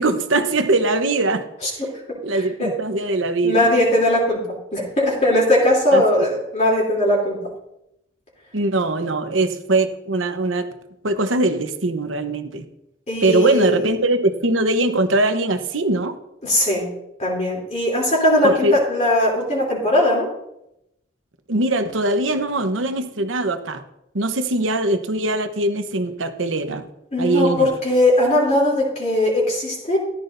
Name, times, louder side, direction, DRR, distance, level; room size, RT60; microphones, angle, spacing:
voice 1, 0.0-1.4 2.2-3.7 5.9-6.3 8.5-10.7 11.0-12.7 13.2-16.1 18.4-18.8 21.5-23.8 24.1-26.8 27.2-27.7, right 2 dB, 85° right, 7 dB, 1.1 m, -21 dB
voice 2, 2.3-2.7 3.4-7.4 13.1-13.8 16.4-16.9 17.2-20.3 27.1-30.0, left 1 dB, 35° left, -4 dB, 3.2 m, -19 dB
14.0 x 11.5 x 2.7 m, 0.83 s
head